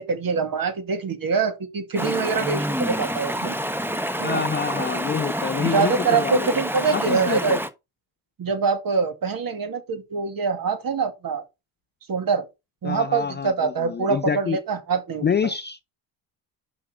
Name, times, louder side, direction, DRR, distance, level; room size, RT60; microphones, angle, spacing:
voice 1, 0.0-3.5 4.2-4.5 4.8-4.9 5.5-7.6 8.4-11.4 12.1-12.5 12.8-15.3, right 5 dB, 45° right, 2.2 m, -24 dB
Stream, 1.9-7.7, equal, 5° right, 1.1 m, -28 dB
voice 2, 4.2-6.5 6.9-7.6 12.8-14.6 15.2-15.8, left 7 dB, 25° left, 0.5 m, -27 dB
5.8 x 5.0 x 6.0 m
supercardioid pair, 75°, 48 cm